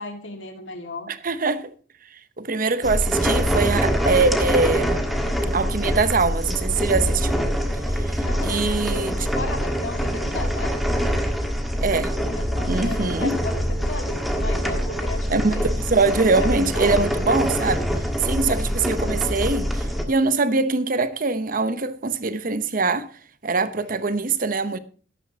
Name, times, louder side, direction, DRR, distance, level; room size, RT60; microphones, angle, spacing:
voice 1, 0.0-1.1 8.2-10.7 12.1-15.6 16.1-17.1, left 2 dB, 75° left, 2.0 m, -35 dB
voice 2, 1.1-1.7 2.4-5.0 5.5-7.4 8.0-9.1 11.8-12.1 12.7-13.4 15.3-17.8 18.2-23.1 23.4-24.8, right 3 dB, 45° right, 0.8 m, -23 dB
sound 1, 2.8-20.1, equal, ahead, 1.5 m, -24 dB
12.5 x 12.0 x 2.8 m
head